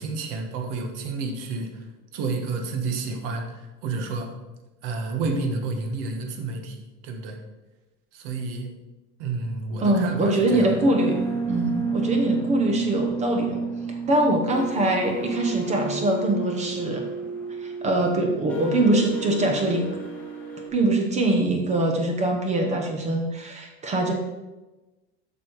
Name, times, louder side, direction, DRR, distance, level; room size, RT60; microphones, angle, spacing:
voice 1, 0.0-1.9 2.1-4.3 4.8-7.4 8.1-8.7 9.2-10.8, right 3 dB, 70° right, 4 dB, 1.5 m, -30 dB
sound 1, 9.7-20.7, right 4 dB, 5° left, 1.6 m, -31 dB
voice 2, 9.8-13.6 13.9-17.0 17.6-19.9 20.7-24.1, right 1 dB, 25° right, 3 dB, 1.0 m, -23 dB
8.3 x 6.1 x 4.6 m, 1.1 s
cardioid pair, 165°, 30 cm